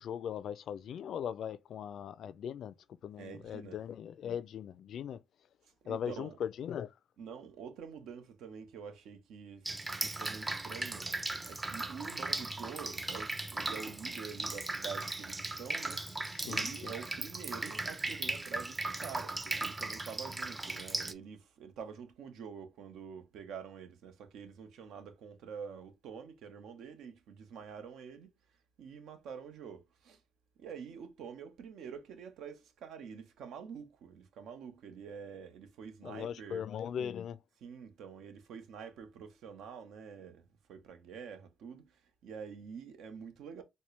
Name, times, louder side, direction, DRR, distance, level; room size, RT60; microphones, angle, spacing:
voice 1, 0.0-2.7 3.0-5.2 5.9-6.9 16.3-16.9 36.0-37.4, left 8 dB, 70° left, 0.4 m, -39 dB
voice 2, 3.2-3.8 5.8-6.4 7.2-9.7 10.0-11.1 11.4-16.0 16.4-28.3 28.8-30.2 30.6-36.6 37.6-43.6, right 6 dB, 80° right, 0.9 m, -47 dB
Drip, 9.7-21.1, right 2 dB, 20° right, 0.6 m, -37 dB
4.3 x 2.2 x 3.2 m
cardioid pair, 90°, 0 cm